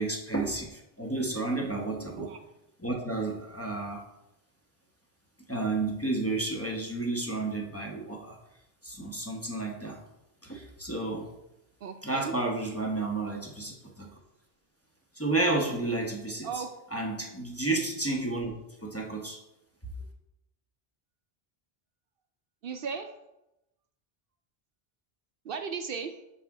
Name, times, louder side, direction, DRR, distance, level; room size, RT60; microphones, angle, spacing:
voice 1, 0.0-2.3 2.8-4.0 5.5-8.4 8.8-10.0 10.4-11.3 12.0-14.1 15.1-16.6 16.9-18.5 18.8-19.4, right 2 dB, 15° left, -1 dB, 0.9 m, -31 dB
voice 2, 11.8-12.3 16.4-16.7 22.6-23.1 25.5-26.1, right 6 dB, 65° right, 7 dB, 0.7 m, -36 dB
6.0 x 5.9 x 4.8 m, 0.90 s
omnidirectional pair, 1.1 m